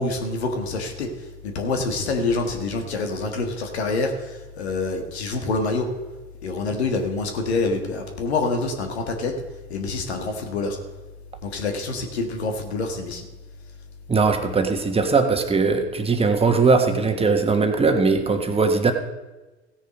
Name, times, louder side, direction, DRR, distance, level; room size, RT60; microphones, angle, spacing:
voice 1, 0.0-5.9 6.4-9.3 9.7-10.8 11.4-13.2, left 3 dB, 80° left, 4 dB, 1.7 m, -26 dB
voice 2, 14.1-18.9, right 4 dB, 20° right, 5 dB, 1.3 m, -20 dB
16.0 x 6.7 x 5.2 m, 1.1 s
hypercardioid pair, 80°, 32 cm